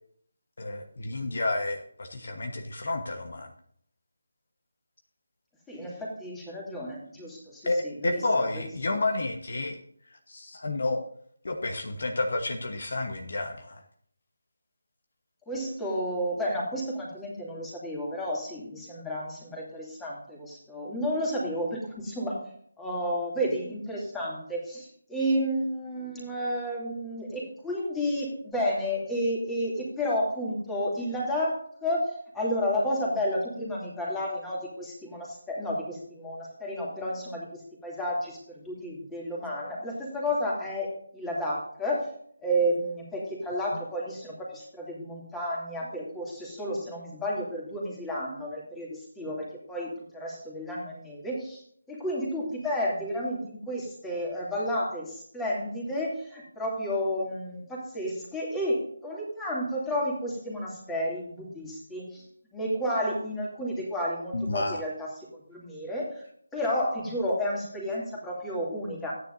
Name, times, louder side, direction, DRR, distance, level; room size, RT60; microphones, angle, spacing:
voice 1, 0.6-3.5 7.6-9.8 10.1-11.0 11.4-13.8 64.3-64.8, left 2 dB, 55° left, 4 dB, 1.3 m, -30 dB
voice 2, 5.7-8.2 15.5-22.4 22.8-40.9 41.1-42.1 42.4-51.6 51.9-62.2 62.5-66.2 66.5-69.1, equal, 5° left, -4 dB, 2.7 m, -31 dB
14.0 x 9.5 x 2.7 m, 0.63 s
figure-of-eight pair, 155°, 0 cm